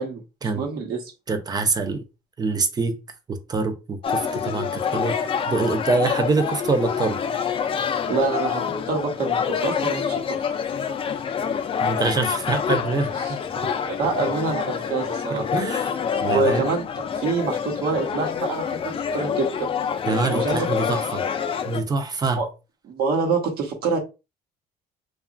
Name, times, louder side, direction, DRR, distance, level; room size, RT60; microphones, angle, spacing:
voice 1, 0.0-1.1 8.1-10.4 13.2-13.3 13.9-15.5 16.2-19.7 20.3-20.7 22.4-22.5 22.8-24.0, right 4 dB, 65° right, 1.0 m, -26 dB
voice 2, 1.3-2.0 2.4-3.0 3.3-7.2 11.8-13.4 15.3-15.9 16.2-16.6 20.1-21.2 21.7-22.4, right 4 dB, 25° right, 0.6 m, -25 dB
sound 1, 4.0-21.8, left 7 dB, 35° left, 0.4 m, -27 dB
2.9 x 2.3 x 2.4 m
cardioid pair, 110°, 17 cm